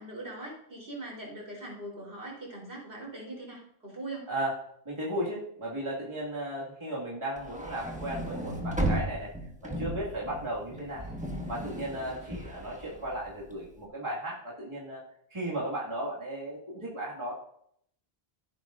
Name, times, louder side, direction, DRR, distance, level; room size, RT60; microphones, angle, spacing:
voice 1, 0.0-4.2 11.0-11.3, right 2 dB, 75° right, -4 dB, 4.2 m, -41 dB
voice 2, 4.3-4.6 4.9-9.3 9.8-11.0 11.5-15.1 15.3-17.4, right 1 dB, 25° right, -6 dB, 2.2 m, -35 dB
sound 1, 7.4-13.7, right 1 dB, 5° right, 1.3 m, -35 dB
15.5 x 8.1 x 2.6 m, 0.69 s
omnidirectional pair, 1.1 m